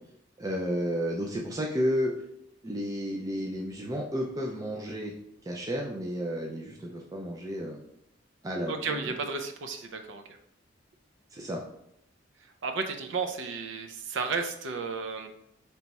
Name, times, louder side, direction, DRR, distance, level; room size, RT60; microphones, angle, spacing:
voice 1, 0.4-2.1 2.6-5.1 5.4-7.8 8.4-9.1 11.3-11.6, equal, 20° right, -1 dB, 0.4 m, -32 dB
voice 2, 8.7-10.4 12.6-15.3, right 4 dB, 80° right, 6 dB, 0.5 m, -33 dB
3.4 x 2.9 x 4.0 m, 0.75 s
head